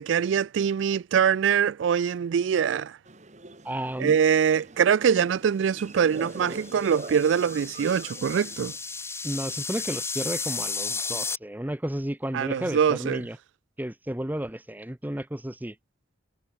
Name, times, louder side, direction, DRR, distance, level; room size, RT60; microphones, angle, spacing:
voice 1, 0.0-3.0 4.0-8.7 12.3-13.2, right 7 dB, 80° right, 0.4 m, -23 dB
sound 1, 3.1-8.8, right 2 dB, 40° right, 1.7 m, -43 dB
voice 2, 3.6-4.2 9.2-13.4 13.8-15.7, right 1 dB, 10° right, 0.8 m, -32 dB
sound 2, 6.2-11.4, left 4 dB, 15° left, 2.6 m, -34 dB
head